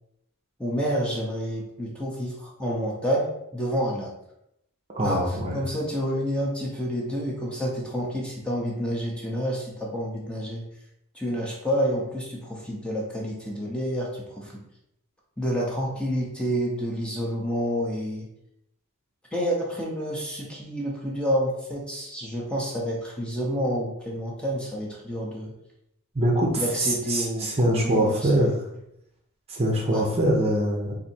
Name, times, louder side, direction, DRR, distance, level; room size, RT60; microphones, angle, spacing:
voice 1, 0.6-4.1 5.0-10.6 11.1-14.6 15.4-18.3 19.3-25.5 26.6-28.5 29.9-30.1, equal, 5° left, -3 dB, 0.8 m, -29 dB
voice 2, 4.9-5.6 26.1-28.5 29.5-31.0, right 1 dB, 30° right, -1 dB, 0.7 m, -23 dB
4.2 x 2.7 x 4.3 m, 0.80 s
head